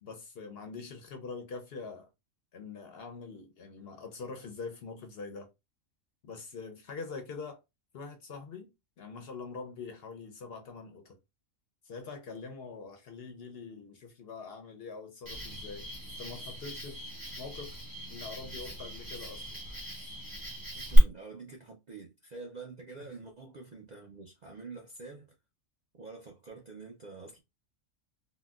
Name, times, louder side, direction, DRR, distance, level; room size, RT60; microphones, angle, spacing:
voice 1, 0.0-2.1 2.5-5.5 6.2-7.6 7.9-8.7 9.0-11.2 11.8-15.9 16.1-17.7 18.1-19.6, left 4 dB, 60° left, 0.7 m, -44 dB
Cricket, 15.3-21.0, equal, 20° right, 0.8 m, -37 dB
voice 2, 20.7-25.3 26.0-27.4, right 4 dB, 55° right, 0.4 m, -47 dB
3.7 x 2.2 x 2.3 m
omnidirectional pair, 1.3 m